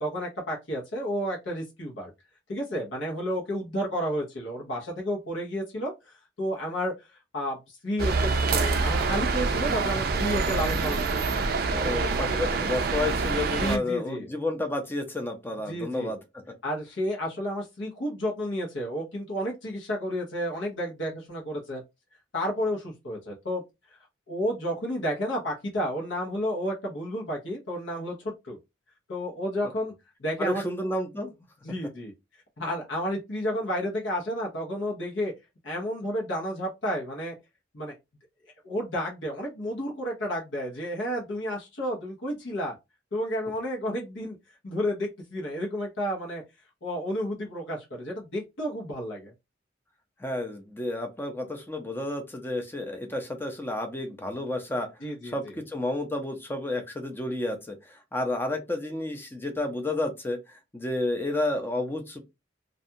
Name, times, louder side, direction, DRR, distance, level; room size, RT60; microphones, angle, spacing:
voice 1, 0.0-2.1 2.5-11.2 13.6-14.3 15.7-16.1 16.6-21.8 22.3-23.6 24.3-28.6 29.1-29.9 30.2-30.6 31.6-32.1 32.6-35.3 35.6-37.3 37.7-37.9 38.6-42.7 43.1-44.4 44.6-46.4 46.8-49.3 55.0-55.5, equal, 80° left, 0.9 m, -31 dB
sound 1, 8.0-13.8, right 4 dB, 50° right, 0.4 m, -26 dB
voice 2, 11.7-16.2 30.4-31.3 50.2-54.9 55.3-62.2, left 1 dB, 10° left, 0.5 m, -31 dB
2.5 x 2.3 x 2.7 m
head